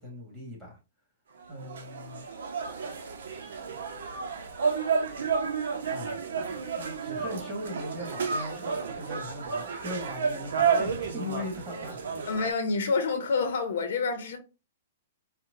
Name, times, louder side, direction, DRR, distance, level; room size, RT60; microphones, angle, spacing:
voice 1, 0.0-0.8 1.5-2.3 5.9-12.3, left 1 dB, 10° right, 1.5 m, -39 dB
sound 1, 1.4-12.5, right 6 dB, 85° right, 0.7 m, -31 dB
voice 2, 12.3-14.4, left 4 dB, 70° left, 0.8 m, -28 dB
4.3 x 2.2 x 2.6 m
hypercardioid pair, 165°, 0 cm